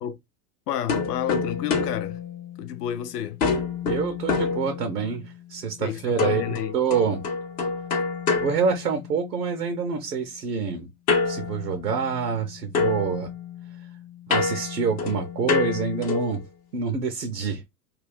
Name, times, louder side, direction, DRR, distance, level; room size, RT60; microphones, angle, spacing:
voice 1, 0.7-2.2 2.6-3.4 5.8-6.8, left 10 dB, 75° left, 0.6 m, -30 dB
sound 1, 0.9-3.0 3.4-5.2 6.2-9.4 11.1-12.5 12.7-16.4, left 4 dB, 20° left, 0.3 m, -28 dB
voice 2, 3.8-7.2 8.4-10.9 11.2-13.3 14.3-16.4 16.7-17.6, right 5 dB, 90° right, 0.6 m, -27 dB
2.4 x 2.3 x 3.3 m
figure-of-eight pair, 85°, 47 cm